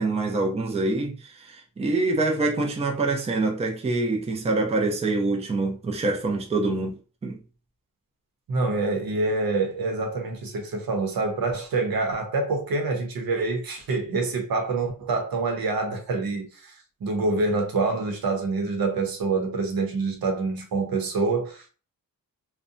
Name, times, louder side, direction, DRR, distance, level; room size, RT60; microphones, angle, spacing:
voice 1, 0.0-6.9 7.2-7.4, right 2 dB, 20° right, 0.4 m, -25 dB
voice 2, 8.5-16.7 17.0-21.7, right 3 dB, 90° right, 0.8 m, -26 dB
2.6 x 2.2 x 2.5 m
wide cardioid pair, 155°, 35 cm